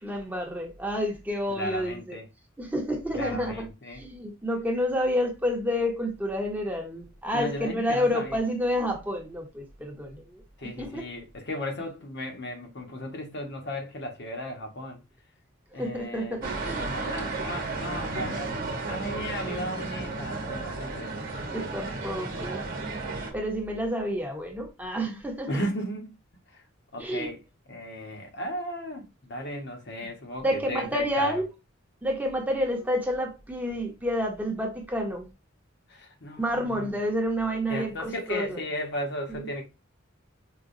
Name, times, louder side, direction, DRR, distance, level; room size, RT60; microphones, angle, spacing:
voice 1, 0.0-2.2 2.6-11.1 15.7-16.9 21.5-22.6 23.3-25.5 27.0-27.3 30.4-31.5 32.0-35.3 36.4-38.6 39.3-39.5, equal, 10° right, 0.8 m, -29 dB
voice 2, 1.6-2.2 3.1-4.0 7.3-8.4 10.6-15.0 15.7-16.4 16.8-18.5 18.9-21.1 25.5-26.1 26.5-26.6 26.9-27.4 27.7-31.3 35.9-36.9 37.7-39.6, equal, 60° left, 1.0 m, -35 dB
sound 1, 16.4-23.3, right 3 dB, 45° right, 0.9 m, -33 dB
4.8 x 2.2 x 2.6 m
head